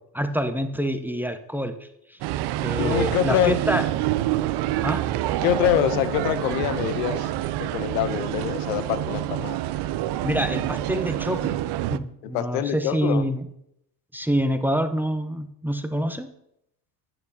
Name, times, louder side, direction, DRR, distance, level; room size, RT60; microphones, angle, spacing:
voice 1, 0.1-2.2 2.6-3.8 4.8-5.0 10.2-11.6 11.9-13.5 14.1-16.3, equal, 5° right, 9 dB, 0.8 m, -26 dB
sound 1, 2.2-12.0, right 14 dB, 55° right, 0.6 m, -27 dB
voice 2, 2.8-3.6 5.4-7.3 7.6-9.6 12.3-13.3, left 12 dB, 75° left, 14 dB, 0.7 m, -25 dB
9.5 x 8.9 x 2.8 m, 0.77 s
hypercardioid pair, 65°, 50 cm